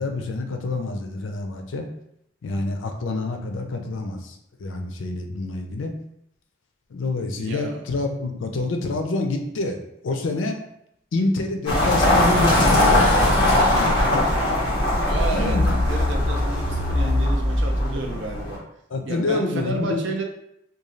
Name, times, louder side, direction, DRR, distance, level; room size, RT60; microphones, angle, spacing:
voice 1, 0.0-1.9 2.4-5.9 6.9-9.8 10.0-10.6 11.1-13.4 13.8-13.9 15.3-15.6 18.9-20.0, left 3 dB, 80° left, 4 dB, 0.4 m, -27 dB
voice 2, 7.4-7.8 15.0-18.6 19.1-20.2, right 2 dB, 70° right, 2 dB, 0.5 m, -31 dB
sound 1, 11.7-18.6, left 1 dB, 25° left, 1.0 m, -20 dB
2.6 x 2.2 x 3.0 m, 0.75 s
head